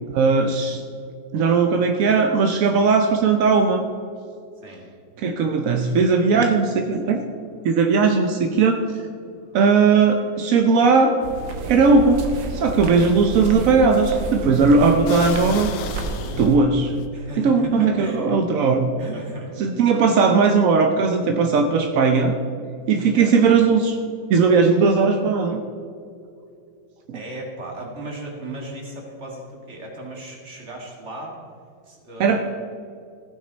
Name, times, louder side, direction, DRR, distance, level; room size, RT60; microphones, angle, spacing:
voice 1, 0.1-0.8 1.3-3.8 5.2-7.2 7.6-8.8 9.5-11.2 11.7-15.7 16.3-16.9 17.4-18.9 19.6-22.3 22.9-24.0 24.3-25.6 27.1-27.2 32.2-32.4, right 4 dB, 60° right, 5 dB, 0.9 m, -18 dB
sound 1, 11.2-16.6, right 3 dB, 75° right, 1.9 m, -30 dB
sound 2, 14.3-14.4 15.1-17.1, left 8 dB, 80° left, 1.5 m, -34 dB
voice 2, 17.1-18.3 19.0-19.5 23.1-23.4 27.1-31.4 31.8-32.4, right 1 dB, 35° right, 0 dB, 2.3 m, -36 dB
15.0 x 9.5 x 4.0 m, 2.4 s
omnidirectional pair, 2.1 m